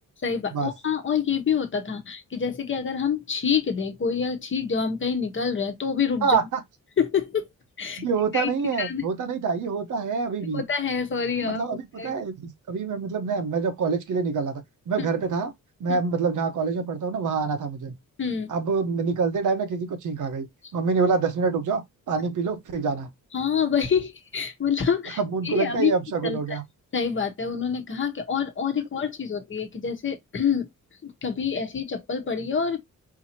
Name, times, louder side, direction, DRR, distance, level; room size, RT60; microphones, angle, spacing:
voice 1, 0.2-6.4 7.0-7.5 7.8-8.1 8.3-8.5 8.8-9.0 10.5-12.1 15.0-15.1 15.9-16.0 18.2-18.5 23.3-25.2 25.4-25.9 26.2-26.6 26.9-30.7 31.0-32.8, left 6 dB, 35° left, 1.1 m, -27 dB
voice 2, 6.2-6.6 8.0-10.6 11.4-15.5 15.8-17.9 18.5-20.5 20.7-23.1 25.2-26.6, right 5 dB, 65° right, 1.1 m, -26 dB
4.7 x 2.8 x 2.8 m
cardioid pair, 130°, 33 cm